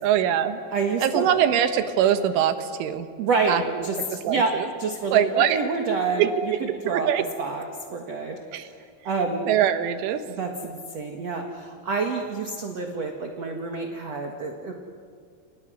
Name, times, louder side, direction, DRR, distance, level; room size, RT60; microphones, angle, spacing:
voice 1, 0.0-0.6 1.0-3.1 3.5-3.6 4.3-4.7 5.1-5.6 6.2-6.3 6.9-7.2 8.5-8.7 9.5-10.2, right 10 dB, 90° right, 9 dB, 3.8 m, -22 dB
voice 2, 0.7-1.3 3.2-7.7 7.9-8.4 9.0-9.4 10.3-14.7, right 4 dB, 60° right, 2 dB, 1.8 m, -28 dB
29.5 x 29.0 x 6.3 m, 2.2 s
omnidirectional pair, 5.4 m